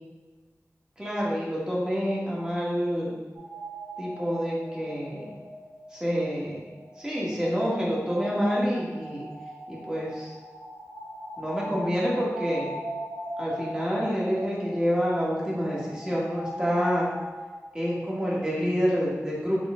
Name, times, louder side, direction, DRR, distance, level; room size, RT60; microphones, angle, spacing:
voice 1, 1.0-3.1 4.0-5.3 5.9-6.6 7.0-9.2 9.7-10.3 11.4-12.7 13.4-17.1 17.7-19.6, equal, 15° right, -6 dB, 1.5 m, -27 dB
sound 1, 3.3-18.0, right 1 dB, 80° right, 1.3 m, -40 dB
4.3 x 3.1 x 3.7 m, 1.3 s
wide cardioid pair, 70°, 5 cm